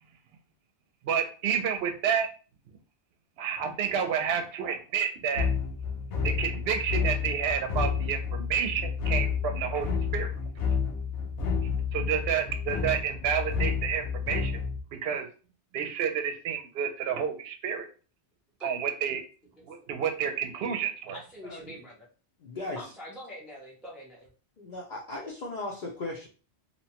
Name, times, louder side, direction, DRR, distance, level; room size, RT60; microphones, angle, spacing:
voice 1, 1.0-2.3 3.4-5.5 6.2-10.3 11.9-14.6 14.9-15.3 15.7-17.9 18.6-19.2 19.6-21.2, right 7 dB, 65° right, 6 dB, 0.8 m, -30 dB
sound 1, 5.4-14.8, left 6 dB, 75° left, 0.9 m, -30 dB
voice 2, 19.6-19.9 21.1-22.1 22.8-24.3, equal, ahead, -3 dB, 0.4 m, -45 dB
voice 3, 22.4-22.9 24.6-26.3, left 2 dB, 55° left, -3 dB, 0.6 m, -37 dB
2.9 x 2.1 x 2.8 m, 0.37 s
omnidirectional pair, 1.2 m